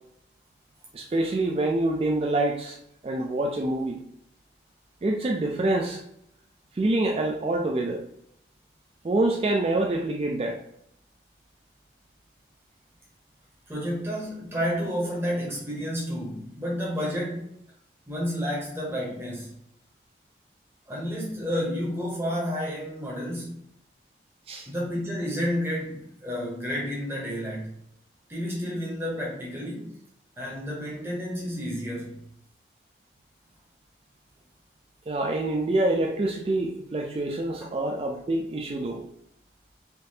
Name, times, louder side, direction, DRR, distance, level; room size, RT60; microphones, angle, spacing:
voice 1, 0.9-2.8 3.0-4.0 5.0-6.0 6.7-8.0 9.0-10.6 24.5-24.7 35.1-39.1, right 2 dB, 35° right, 1 dB, 0.3 m, -26 dB
voice 2, 13.7-17.6 18.1-19.6 20.9-23.6 24.7-27.8 28.3-30.0 30.4-32.3, equal, 15° right, -4 dB, 0.8 m, -31 dB
3.5 x 2.7 x 2.7 m, 0.72 s
head